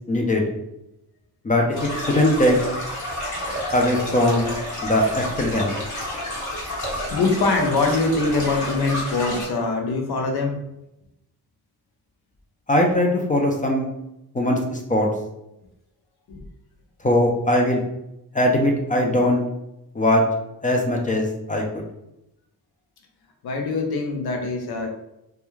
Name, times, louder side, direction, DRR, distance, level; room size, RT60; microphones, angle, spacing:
voice 1, 0.1-0.4 1.4-2.6 3.7-4.5 4.8-5.7 12.7-13.9 14.3-15.1 17.0-17.8 18.3-19.4 19.9-20.2 20.6-21.8, left 1 dB, 20° left, 1 dB, 0.4 m, -20 dB
sound 1, 1.7-9.4, equal, 45° left, 1.0 m, -30 dB
voice 2, 7.1-10.6 16.3-16.4 23.4-24.9, left 3 dB, 75° left, 3 dB, 0.6 m, -23 dB
2.3 x 2.1 x 3.0 m, 0.87 s
cardioid pair, 95°, 39 cm